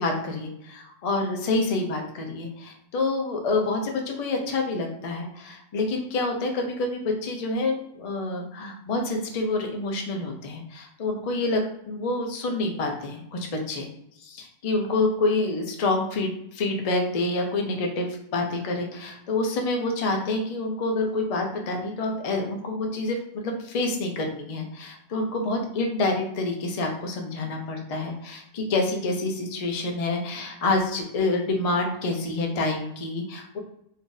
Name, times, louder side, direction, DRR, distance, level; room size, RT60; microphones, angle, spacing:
voice 1, 0.0-11.6 11.9-13.9 14.2-18.1 18.3-33.6, left 2 dB, 45° left, 2 dB, 0.5 m, -27 dB
2.6 x 2.5 x 3.8 m, 0.78 s
omnidirectional pair, 1.2 m